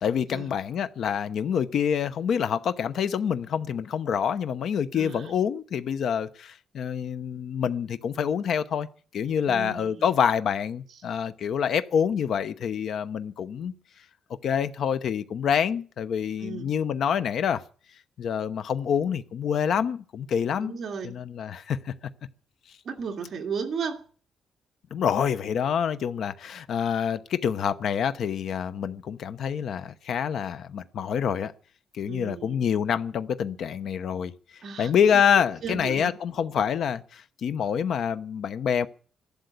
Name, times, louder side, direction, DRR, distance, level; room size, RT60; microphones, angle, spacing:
voice 1, 0.0-8.9 9.1-13.7 14.4-17.6 18.2-20.8 21.0-21.9 24.9-31.5 31.9-34.3 34.8-38.9, left 8 dB, 60° left, 0.9 m, -26 dB
voice 2, 4.9-5.3 9.5-10.0 16.4-16.7 20.6-21.1 22.8-24.0 32.1-32.5 34.6-35.2 35.6-36.1, right 5 dB, 45° right, 2.3 m, -34 dB
14.0 x 12.0 x 8.3 m
cardioid pair, 165°, 0 cm